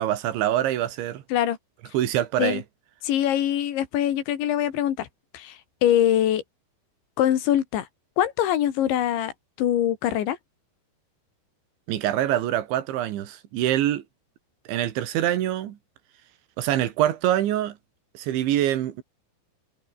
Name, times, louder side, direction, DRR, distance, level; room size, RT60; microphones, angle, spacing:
voice 1, 0.0-1.2 1.9-2.6 11.9-14.0 14.7-15.8 16.6-17.8 18.2-19.0, right 12 dB, 85° right, 4.2 m, -25 dB
voice 2, 3.0-5.1 5.3-6.4 7.2-7.9 8.2-9.3 9.6-10.4, left 11 dB, 90° left, 4.5 m, -23 dB
omnidirectional pair, 5.1 m